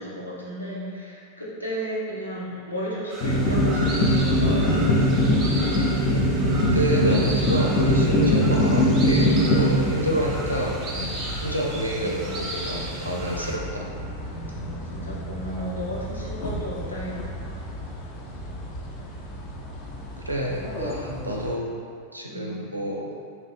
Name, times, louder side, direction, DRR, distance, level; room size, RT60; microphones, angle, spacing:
voice 1, 0.0-5.2 14.9-17.3 22.2-22.6, equal, 85° left, -7 dB, 0.7 m, -34 dB
sound 1, 3.1-13.6, right 1 dB, 30° right, 0.6 m, -36 dB
sound 2, 3.2-21.5, equal, 40° left, 0.5 m, -24 dB
voice 2, 6.7-13.9 20.2-21.8 22.1-23.1, right 1 dB, 85° right, -2 dB, 0.4 m, -29 dB
3.0 x 2.6 x 3.0 m, 2.3 s
figure-of-eight pair, 90°, 0 cm